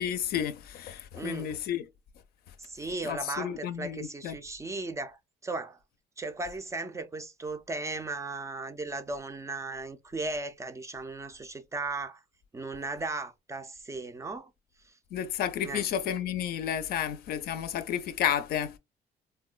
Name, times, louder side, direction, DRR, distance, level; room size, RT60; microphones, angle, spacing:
voice 1, 0.0-1.9 3.0-4.4 15.1-18.8, left 9 dB, 65° left, 0.5 m, -31 dB
voice 2, 1.1-1.5 2.6-5.8 6.2-12.2 12.5-14.5 14.8-14.9 15.6-15.9, right 3 dB, 20° right, 0.4 m, -36 dB
3.6 x 2.2 x 2.3 m
cardioid pair, 110°, 17 cm